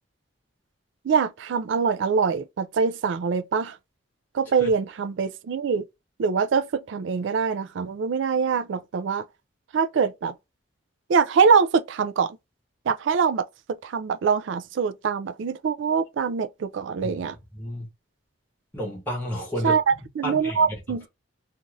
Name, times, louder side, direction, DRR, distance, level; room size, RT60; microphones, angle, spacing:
voice 1, 1.0-3.8 4.3-5.9 6.2-9.2 9.7-10.3 11.1-12.4 12.9-13.4 13.8-17.4 19.6-19.8 20.2-21.1, right 5 dB, 65° right, 0.3 m, -24 dB
voice 2, 17.5-17.9 18.7-19.8 20.2-20.7, equal, 10° left, 1.0 m, -31 dB
2.6 x 2.5 x 3.0 m
head